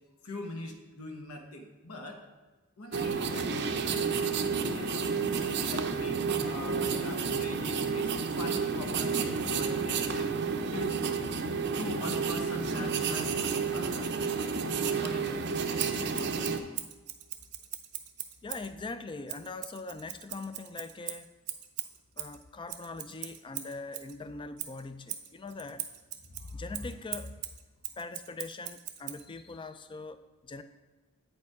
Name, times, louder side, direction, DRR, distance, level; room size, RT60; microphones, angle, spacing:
voice 1, 0.2-2.2 2.8-4.4 4.6-5.2 5.7-10.3 10.7-11.2 11.8-14.1 15.0-15.8, left 1 dB, 80° left, 4 dB, 1.1 m, -42 dB
sound 1, 2.9-16.6, right 5 dB, 50° right, 0.5 m, -31 dB
Scissors, 15.8-18.7 19.3-24.1 24.6-29.2, right 13 dB, 90° right, 0.7 m, -40 dB
voice 2, 18.4-21.3 22.2-25.9 26.3-27.4 28.0-30.6, left 3 dB, 20° left, 11 dB, 0.3 m, -41 dB
8.6 x 5.2 x 4.7 m, 1.2 s
head